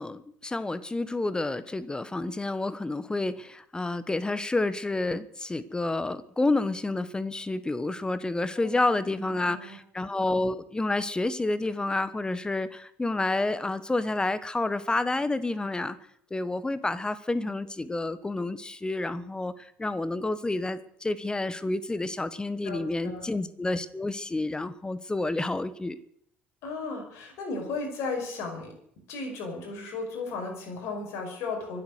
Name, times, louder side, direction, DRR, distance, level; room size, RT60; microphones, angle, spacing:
voice 1, 0.0-16.0 16.3-26.0, left 2 dB, 15° left, 16 dB, 1.1 m, -29 dB
voice 2, 8.6-9.8 22.6-23.3 26.6-28.7 29.1-31.8, left 3 dB, 55° left, 2 dB, 5.5 m, -35 dB
24.0 x 8.3 x 6.6 m, 0.69 s
figure-of-eight pair, 60°, 6 cm